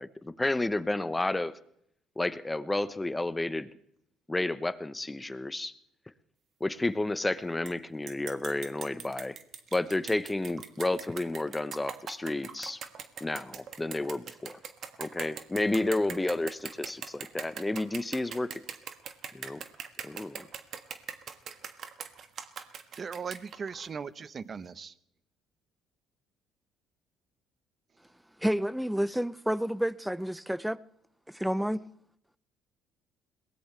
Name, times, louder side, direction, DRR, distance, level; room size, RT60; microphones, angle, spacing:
voice 1, 0.0-1.6 2.2-3.7 4.3-5.7 6.6-9.4 9.7-12.8 13.2-14.6 15.0-18.6 19.3-19.6 20.0-20.5, left 2 dB, 15° left, 1.0 m, -31 dB
sound 1, 7.7-7.8 8.1-23.9, right 7 dB, 55° right, 1.6 m, -41 dB
voice 2, 23.0-24.9, right 6 dB, 40° right, 0.9 m, -38 dB
voice 3, 28.4-30.8 31.3-31.8, equal, 5° right, 0.7 m, -29 dB
21.5 x 18.5 x 3.4 m
supercardioid pair, 75°, 0 cm